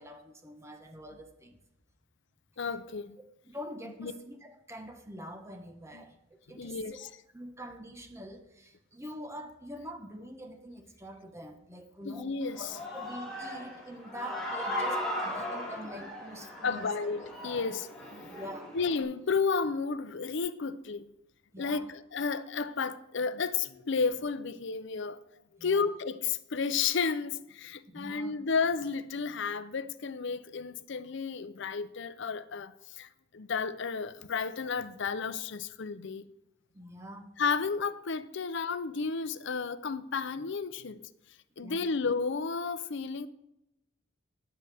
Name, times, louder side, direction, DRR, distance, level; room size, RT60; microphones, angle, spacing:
voice 1, 0.0-1.6 3.4-12.3 12.6-16.8 18.2-18.7 21.5-21.8 25.6-25.9 27.9-28.4 36.7-37.4 41.6-41.9, equal, 15° right, 1.1 m, -45 dB
voice 2, 2.6-3.2 4.0-4.1 5.9-6.0 6.6-7.1 12.0-12.7 16.6-18.3 18.7-21.1 21.6-25.2 25.6-33.1 33.3-36.3 37.4-41.0 41.6-43.3, left 5 dB, 60° left, 0.6 m, -32 dB
Human voice / Cheering, 12.4-19.0, left 1 dB, 5° left, 3.6 m, -37 dB
18.0 x 7.8 x 3.5 m
head